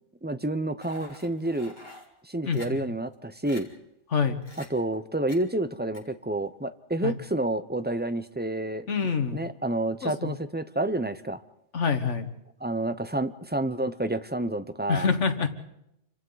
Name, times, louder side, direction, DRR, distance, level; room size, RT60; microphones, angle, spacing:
voice 1, 0.2-1.8 2.2-3.7 4.6-8.8 9.3-11.4 12.6-15.1, right 1 dB, 10° right, 11 dB, 0.5 m, -29 dB
sound 1, 0.8-2.1 2.5-2.7 3.1-3.2 3.5-3.6 4.4-4.7 5.3-5.4 5.9-6.0, left 2 dB, 35° left, 2.8 m, -46 dB
voice 2, 2.4-2.8 4.1-4.4 7.0-7.2 8.9-9.4 10.0-10.4 11.7-12.3 14.9-15.5, left 6 dB, 70° left, 8 dB, 1.8 m, -26 dB
28.5 x 25.0 x 4.0 m, 0.81 s
omnidirectional pair, 1.3 m